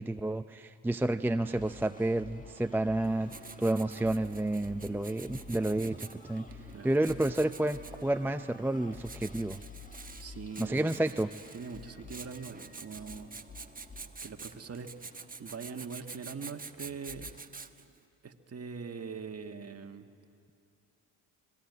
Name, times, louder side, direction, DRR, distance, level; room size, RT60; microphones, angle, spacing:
voice 1, 0.0-3.3 3.6-9.6 10.6-11.3, right 1 dB, 5° right, 9 dB, 0.5 m, -30 dB
sound 1, 1.3-17.4, left 4 dB, 20° left, 1.7 m, -52 dB
Writing, 3.0-18.0, right 4 dB, 20° right, 1.2 m, -48 dB
voice 2, 10.2-10.9 11.5-13.3 14.2-14.9 15.4-17.3 18.2-20.1, right 5 dB, 35° right, 5 dB, 1.8 m, -42 dB
25.0 x 21.0 x 9.6 m, 2.6 s
supercardioid pair, 70°, 42 cm